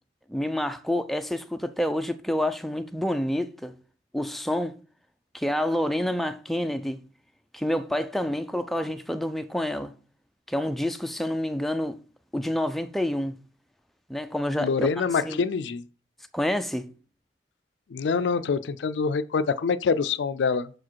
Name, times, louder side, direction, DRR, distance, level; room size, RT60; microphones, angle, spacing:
voice 1, 0.3-3.8 4.1-4.8 5.3-7.0 7.5-9.9 10.5-12.0 12.3-13.4 14.1-15.4 16.3-16.9, left 1 dB, ahead, 0.4 m, -28 dB
voice 2, 14.6-15.8 17.9-20.7, left 5 dB, 80° left, 0.4 m, -25 dB
6.2 x 4.8 x 4.5 m
head